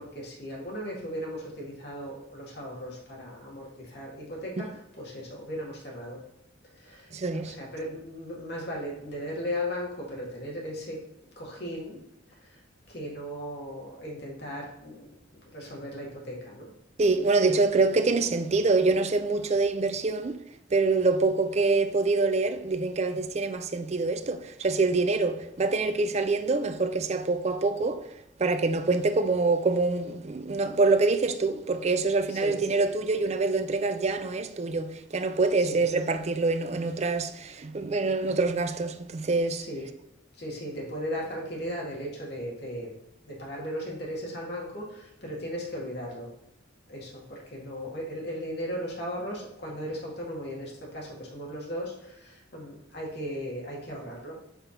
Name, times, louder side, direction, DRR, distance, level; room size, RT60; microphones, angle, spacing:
voice 1, 0.0-6.2 6.7-7.1 7.4-11.0 11.4-12.0 12.3-12.6 12.9-15.1 15.5-16.7 17.5-17.6 32.3-32.6 35.6-35.8 39.6-39.9 40.3-42.9 43.2-46.3 46.9-54.4, equal, 55° left, 2.1 m, -37 dB
voice 2, 7.1-7.6 17.0-20.4 20.7-28.1 28.4-39.7, right 3 dB, 35° right, 0.4 m, -25 dB
5.7 x 3.5 x 5.8 m
head